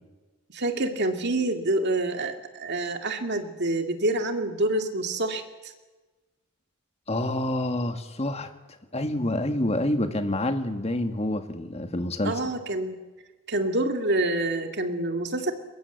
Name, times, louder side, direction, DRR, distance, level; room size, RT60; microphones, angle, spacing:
voice 1, 0.5-5.7 12.2-13.0 13.5-15.5, right 2 dB, 50° right, 6 dB, 2.2 m, -27 dB
voice 2, 7.1-8.5 8.9-12.3, left 1 dB, 30° left, 8 dB, 1.7 m, -27 dB
22.5 x 21.5 x 8.2 m, 1.2 s
head